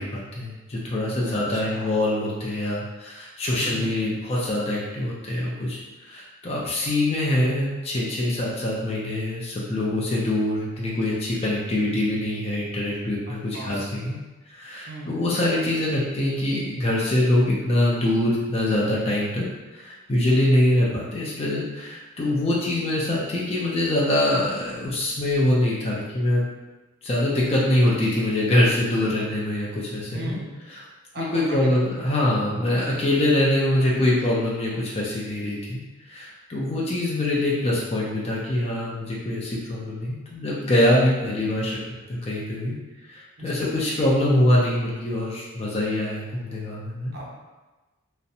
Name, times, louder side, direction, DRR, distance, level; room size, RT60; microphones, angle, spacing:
voice 1, 0.0-14.2 14.5-19.5 19.7-26.5 27.0-30.4 31.2-35.8 36.1-41.8 42.1-42.8 43.1-47.1, left 1 dB, 25° left, -5 dB, 0.4 m, -24 dB
voice 2, 1.5-2.0 3.5-3.9 13.3-13.9 14.9-15.1 30.1-30.5 31.1-31.8 43.4-43.6 47.1-47.4, right 1 dB, 45° right, -3 dB, 0.5 m, -37 dB
2.5 x 2.0 x 2.6 m, 1.2 s
head